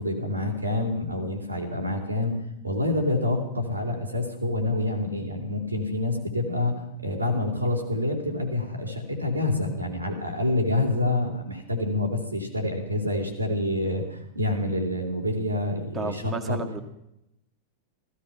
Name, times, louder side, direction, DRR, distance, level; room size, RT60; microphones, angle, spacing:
voice 1, 0.0-2.3 2.6-16.6, left 2 dB, 85° right, 3 dB, 3.2 m, -27 dB
voice 2, 15.9-16.8, right 3 dB, 20° right, 6 dB, 1.9 m, -32 dB
15.5 x 15.0 x 5.7 m, 0.83 s
figure-of-eight pair, 90°, 0 cm